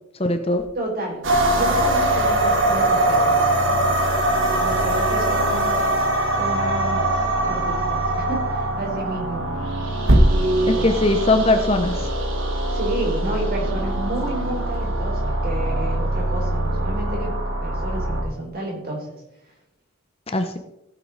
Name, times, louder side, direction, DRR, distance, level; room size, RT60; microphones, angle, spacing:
voice 1, 0.2-0.6 10.7-12.1 20.3-20.6, left 2 dB, 30° left, 6 dB, 0.8 m, -20 dB
sound 1, 0.6-1.6 4.3-7.9 9.0-14.9, right 1 dB, 85° right, 1.5 m, -26 dB
voice 2, 0.7-1.2 1.5-3.8 4.6-5.7 6.4-9.5 10.3-10.9 12.7-17.3 17.6-19.1, right 1 dB, 45° right, -1 dB, 4.0 m, -30 dB
sound 2, 1.2-18.2, right 1 dB, 65° right, 2.2 m, -22 dB
15.5 x 8.3 x 4.1 m, 0.85 s
head